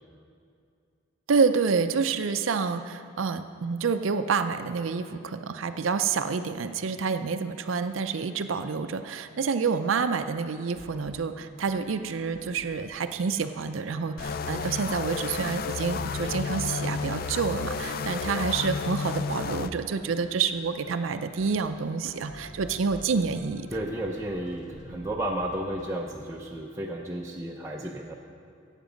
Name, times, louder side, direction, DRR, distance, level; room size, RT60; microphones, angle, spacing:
voice 1, 1.3-23.7, right 5 dB, 85° right, 9 dB, 0.5 m, -28 dB
sound 1, 10.7-25.9, equal, 75° left, 2.0 m, -49 dB
sound 2, 14.2-19.7, left 5 dB, 50° left, 0.4 m, -32 dB
voice 2, 23.7-28.1, right 1 dB, 15° right, -2 dB, 0.6 m, -33 dB
15.0 x 8.1 x 5.1 m, 2.4 s
head